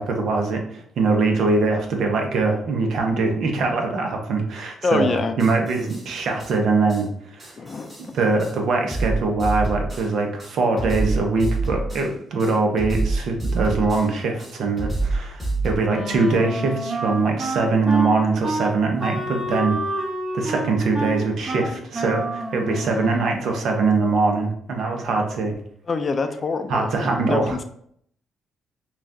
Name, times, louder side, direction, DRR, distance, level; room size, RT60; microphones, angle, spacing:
voice 1, 0.0-7.6 8.1-20.1 20.3-25.5 26.7-27.6, right 3 dB, 70° right, 3 dB, 0.8 m, -22 dB
voice 2, 4.8-5.4 7.6-8.1 25.9-27.6, left 4 dB, 40° left, 9 dB, 0.4 m, -25 dB
sound 1, 5.4-6.1 6.4-6.5 6.9-7.0 7.4-8.1 8.4-8.5 8.9-10.1 10.4-12.1 12.4-14.1 14.4-15.7, right 3 dB, 20° right, 1.6 m, -27 dB
Wind instrument woodwind instrument, 15.9-23.4, right 1 dB, 45° right, 1.3 m, -29 dB
5.7 x 2.4 x 2.7 m, 0.67 s
cardioid pair, 90°, 0 cm